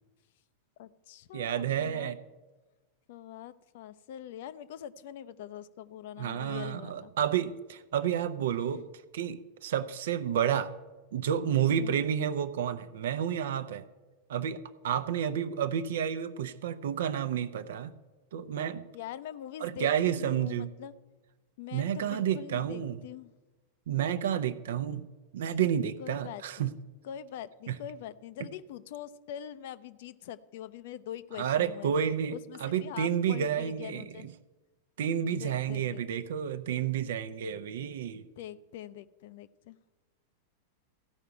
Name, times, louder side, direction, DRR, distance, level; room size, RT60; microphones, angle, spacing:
voice 1, 0.8-2.1 3.1-7.1 8.6-8.8 11.7-12.0 18.9-20.9 21.6-23.3 26.0-26.7 27.0-31.9 32.3-34.3 35.3-36.0 38.4-39.8, left 10 dB, 55° left, 14 dB, 0.5 m, -43 dB
voice 2, 1.3-2.2 6.2-8.8 9.1-10.7 11.1-13.8 14.3-14.6 14.8-17.9 18.3-18.9 19.6-20.7 21.7-23.0 23.9-25.1 25.3-26.7 27.7-27.8 31.4-34.3 35.0-38.2, right 9 dB, 60° right, 13 dB, 0.7 m, -30 dB
15.0 x 5.8 x 8.8 m, 1.2 s
figure-of-eight pair, 90°, 0 cm